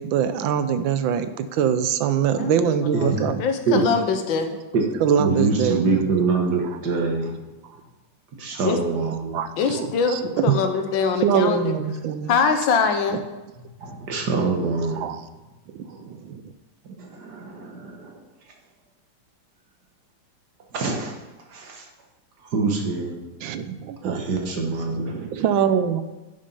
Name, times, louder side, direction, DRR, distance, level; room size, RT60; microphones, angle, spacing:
voice 1, 0.0-3.4 5.0-6.0 8.5-8.6 9.3-10.6 11.2-12.4 15.0-15.2 15.7-16.4 23.4-24.2 24.9-26.0, right 8 dB, 85° right, 11 dB, 1.4 m, -23 dB
voice 2, 2.3-4.5 8.6-8.8 9.6-11.7 12.3-13.2, left 5 dB, 80° left, 7 dB, 1.7 m, -23 dB
voice 3, 5.2-7.4 7.7-7.8 8.4-9.4 13.8-15.2 15.9-16.0 16.8-18.1 20.7-21.1 21.5-21.9 22.4-23.2 24.0-25.4, right 3 dB, 60° right, 1 dB, 1.9 m, -25 dB
9.5 x 6.7 x 5.4 m, 1.1 s
omnidirectional pair, 2.1 m